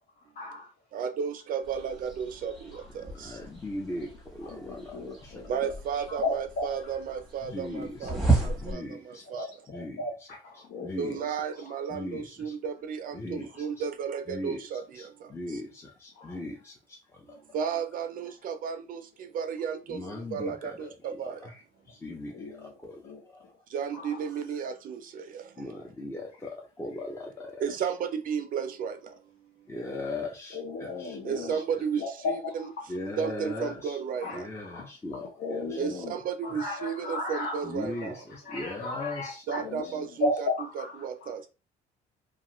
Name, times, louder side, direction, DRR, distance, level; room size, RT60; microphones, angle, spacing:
voice 1, 0.4-0.7 2.7-2.8 4.4-7.0 8.0-8.3 9.2-11.2 11.7-11.8 13.5-13.6 16.1-16.4 22.3-22.7 23.0-23.2 23.9-24.2 30.5-31.6 32.0-32.7 34.2-34.9 35.2-41.3, left 2 dB, 65° left, 0.8 m, -36 dB
voice 2, 0.9-3.4 5.5-9.5 11.0-15.6 17.3-21.5 23.7-25.9 27.6-29.4 29.8-29.9 31.2-32.7 33.2-34.5 35.8-38.3 39.5-40.5 40.8-41.5, right 7 dB, 55° right, 0.4 m, -34 dB
sound 1, 1.6-8.7, right 3 dB, ahead, 1.0 m, -33 dB
voice 3, 3.2-4.1 4.4-5.0 7.5-7.9 8.6-9.2 9.7-10.0 10.8-11.1 11.9-12.2 13.1-13.5 14.3-14.6 15.3-15.7 16.0-16.7 19.9-20.7 22.0-22.5 22.8-22.9 25.6-26.5 26.8-27.5 29.7-30.6 32.9-33.7 34.4-35.2 37.7-38.1 38.5-39.2, left 2 dB, 15° left, 0.6 m, -37 dB
2.5 x 2.3 x 3.0 m
cardioid pair, 110°, 17 cm